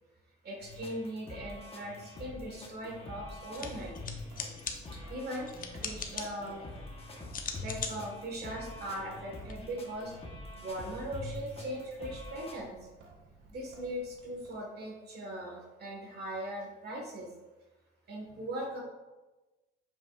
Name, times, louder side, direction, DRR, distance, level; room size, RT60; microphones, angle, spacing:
voice 1, 0.4-4.0 4.6-5.5 5.8-6.6 7.6-10.1 10.6-12.7 13.5-17.3 18.1-18.8, right 1 dB, 55° right, -2 dB, 1.6 m, -39 dB
sound 1, 0.6-12.6, left 2 dB, 30° left, 1.2 m, -45 dB
Sink (filling or washing) / Drip, 2.1-14.6, right 2 dB, 90° right, 1.0 m, -58 dB
sound 2, 3.4-9.5, left 5 dB, 45° left, 0.8 m, -43 dB
7.2 x 5.5 x 2.5 m, 1.1 s
cardioid pair, 90°, 20 cm